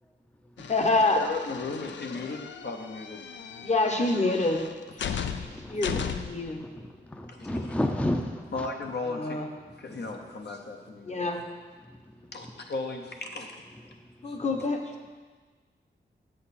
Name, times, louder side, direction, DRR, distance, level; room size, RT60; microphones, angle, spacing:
sound 1, 0.6-6.5, left 7 dB, 90° left, 0.4 m, -37 dB
voice 1, 0.6-1.2 3.6-4.7 5.0-6.6 9.1-9.5 11.1-11.4 14.2-14.9, left 2 dB, 40° left, 4 dB, 1.0 m, -27 dB
voice 2, 1.2-3.2 7.3-7.8 8.5-9.4 9.8-11.4 12.3-13.6 14.3-14.4, left 3 dB, 65° left, 3 dB, 0.9 m, -36 dB
voice 3, 5.4-6.2 6.5-8.7 9.9-10.1, left 1 dB, 5° left, 5 dB, 0.5 m, -32 dB
7.7 x 6.9 x 4.2 m, 1.4 s
wide cardioid pair, 70°, 18 cm